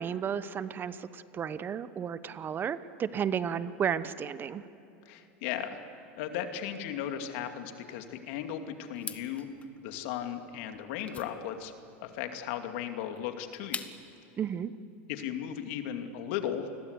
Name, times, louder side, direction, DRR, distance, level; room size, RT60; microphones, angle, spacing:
voice 1, 0.0-4.6 14.4-14.7, right 8 dB, 30° right, 14 dB, 0.9 m, -33 dB
voice 2, 5.1-5.8 6.2-9.5 9.8-11.7 12.0-13.8 15.1-16.7, left 9 dB, 65° left, 6 dB, 2.3 m, -36 dB
sound 1, 8.9-14.2, left 5 dB, 20° left, 1.5 m, -44 dB
28.0 x 21.0 x 8.1 m, 2.6 s
supercardioid pair, 110°, 7 cm